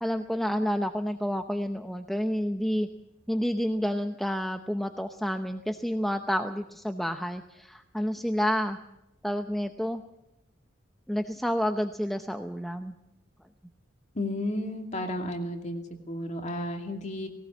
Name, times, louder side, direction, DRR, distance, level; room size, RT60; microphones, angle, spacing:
voice 1, 0.0-2.9 3.3-8.8 9.2-10.0 11.1-12.9, equal, ahead, 6 dB, 0.7 m, -29 dB
voice 2, 14.1-17.3, left 1 dB, 40° left, 3 dB, 2.6 m, -33 dB
19.0 x 18.5 x 7.5 m, 0.90 s
head